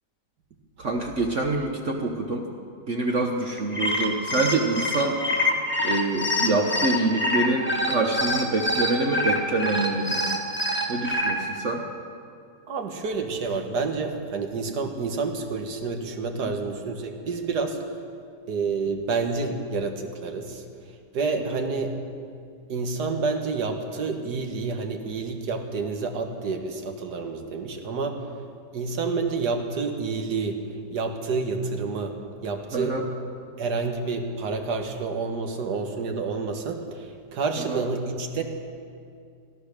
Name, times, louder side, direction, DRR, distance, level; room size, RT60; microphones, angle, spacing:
voice 1, 0.8-2.5 2.9-5.2 5.8-10.3 10.9-11.8 16.4-16.5 32.7-33.0 37.7-37.8, right 2 dB, 50° right, 1 dB, 1.2 m, -26 dB
sound 1, 3.6-11.3, left 1 dB, 5° left, 1.5 m, -26 dB
voice 2, 12.7-17.8 18.5-20.6 21.1-21.9 22.7-28.2 28.7-30.6 30.9-32.2 32.4-33.0 33.6-38.4, right 4 dB, 70° right, 5 dB, 1.8 m, -29 dB
16.5 x 12.0 x 6.6 m, 2.3 s
omnidirectional pair, 1.8 m